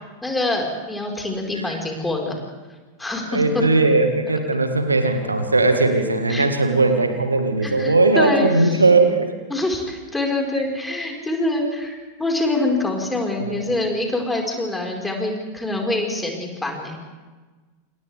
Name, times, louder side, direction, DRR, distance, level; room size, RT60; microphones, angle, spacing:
voice 1, 0.2-2.4 3.0-3.6 6.3-6.5 7.6-8.8 9.5-17.0, left 2 dB, 10° left, 0 dB, 5.1 m, -25 dB
voice 2, 3.3-9.3 13.4-13.6, right 3 dB, 80° right, 6 dB, 1.9 m, -18 dB
28.5 x 28.5 x 3.6 m, 1.3 s
figure-of-eight pair, 90°, 0 cm